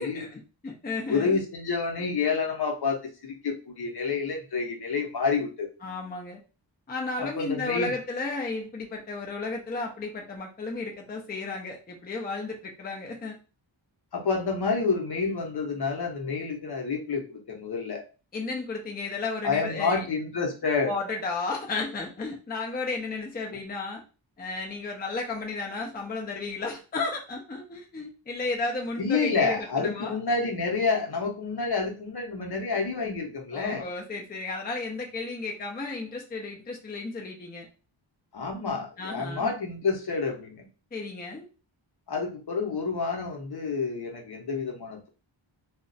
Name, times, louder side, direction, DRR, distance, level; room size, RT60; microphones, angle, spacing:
voice 1, 0.0-1.4 5.8-6.4 6.9-13.4 18.3-20.1 20.8-24.0 24.4-30.2 33.5-37.7 39.0-39.5 40.9-41.5, left 3 dB, 20° left, 0 dB, 0.5 m, -33 dB
voice 2, 1.1-5.7 7.2-7.9 14.1-18.0 19.4-20.9 29.0-33.8 38.3-40.7 42.1-45.1, left 4 dB, 50° left, 2 dB, 0.8 m, -28 dB
2.4 x 2.1 x 3.8 m, 0.33 s
wide cardioid pair, 150°, 48 cm